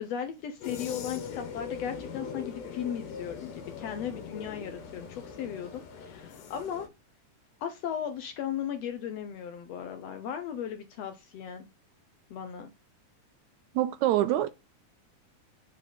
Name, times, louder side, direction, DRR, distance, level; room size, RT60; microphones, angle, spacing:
voice 1, 0.0-6.9 7.6-11.7 12.3-12.7, left 9 dB, 70° left, 1.6 m, -36 dB
sound 1, 0.6-6.9, left 6 dB, 90° left, 2.9 m, -41 dB
voice 2, 13.8-14.5, right 13 dB, 80° right, 1.8 m, -25 dB
6.7 x 5.3 x 4.0 m
omnidirectional pair, 3.6 m